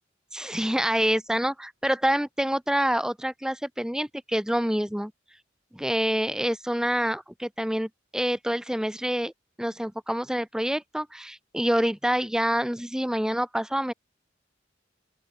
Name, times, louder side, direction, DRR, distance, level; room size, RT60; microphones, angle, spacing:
voice 1, 0.3-5.1 5.7-9.3 9.6-13.9, equal, 5° right, 0.8 m, -27 dB
open air
head